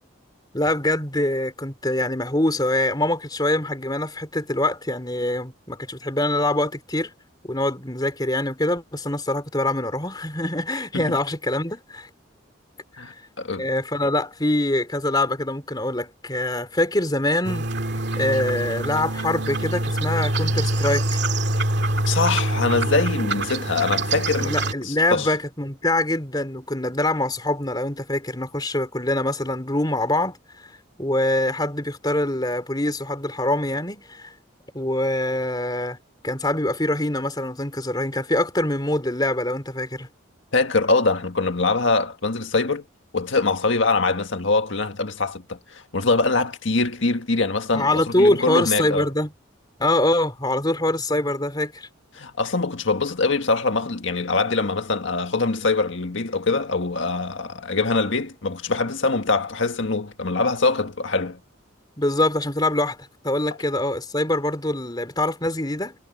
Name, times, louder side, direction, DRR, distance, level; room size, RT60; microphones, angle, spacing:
voice 1, 0.5-7.1 7.4-12.1 13.0-13.1 13.6-17.7 18.2-21.2 24.4-30.4 31.0-34.3 34.7-36.0 36.2-40.1 47.7-49.3 49.8-51.9 62.0-66.0, left 1 dB, 20° left, 3.4 m, -24 dB
voice 2, 13.0-13.7 22.0-24.5 24.8-25.3 40.5-42.8 43.1-49.1 52.1-61.4, left 3 dB, 70° left, 1.7 m, -23 dB
sound 1, 17.4-24.7, right 1 dB, 55° right, 2.3 m, -25 dB
head